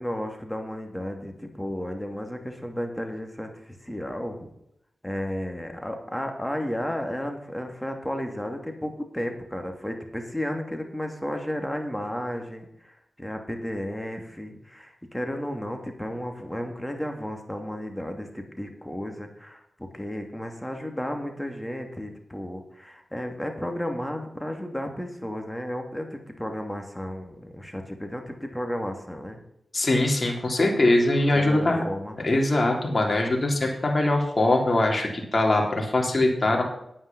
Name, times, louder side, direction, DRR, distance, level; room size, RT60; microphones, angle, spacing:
voice 1, 0.0-4.5 5.0-29.4 31.3-32.2, equal, 10° left, 4 dB, 2.7 m, -33 dB
voice 2, 29.7-31.8 32.2-36.6, left 2 dB, 45° left, 0 dB, 3.4 m, -22 dB
9.4 x 9.3 x 5.5 m, 0.77 s
cardioid pair, 40°, 0 cm